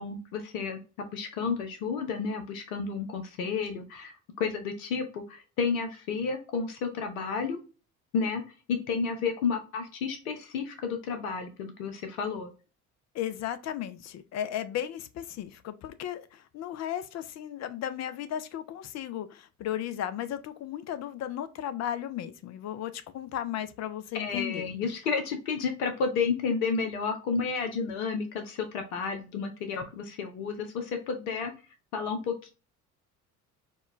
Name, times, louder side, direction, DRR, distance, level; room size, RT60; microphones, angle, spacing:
voice 1, 0.0-7.6 8.1-8.4 8.7-12.5 24.1-31.5 31.9-32.5, left 5 dB, 70° left, 0.9 m, -31 dB
voice 2, 13.1-24.7, left 10 dB, 35° left, 0.5 m, -35 dB
4.3 x 2.2 x 3.0 m
figure-of-eight pair, 60°, 45 cm